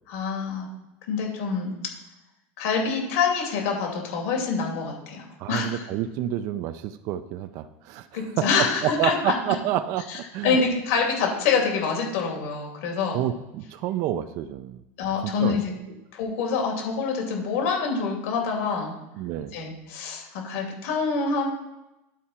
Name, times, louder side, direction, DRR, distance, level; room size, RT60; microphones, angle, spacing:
voice 1, 0.1-0.7 1.1-1.7 2.6-5.8 8.1-9.3 10.1-13.2 15.0-15.7 16.1-18.9 19.5-21.5, left 5 dB, 70° left, 1 dB, 2.7 m, -26 dB
voice 2, 5.4-10.6 13.1-14.8 15.2-15.6 19.2-19.5, right 11 dB, 45° right, 10 dB, 0.4 m, -29 dB
11.5 x 4.8 x 4.3 m, 0.94 s
supercardioid pair, 155°, 8 cm